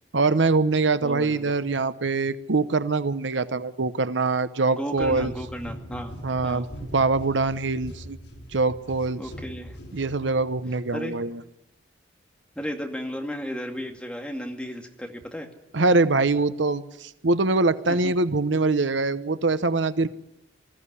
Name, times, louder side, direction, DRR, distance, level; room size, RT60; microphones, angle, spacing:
voice 1, 0.1-5.3 6.2-6.7 6.9-8.2 8.5-9.2 9.9-11.4 15.7-20.1, right 3 dB, 85° right, 13 dB, 0.9 m, -23 dB
voice 2, 1.0-1.4 4.8-6.1 6.4-6.7 9.2-9.8 10.9-11.2 12.6-15.5 17.9-18.1, equal, 5° left, 2 dB, 2.3 m, -34 dB
sound 1, 5.0-10.5, equal, 80° left, 6.6 m, -40 dB
20.5 x 15.0 x 9.8 m, 0.85 s
head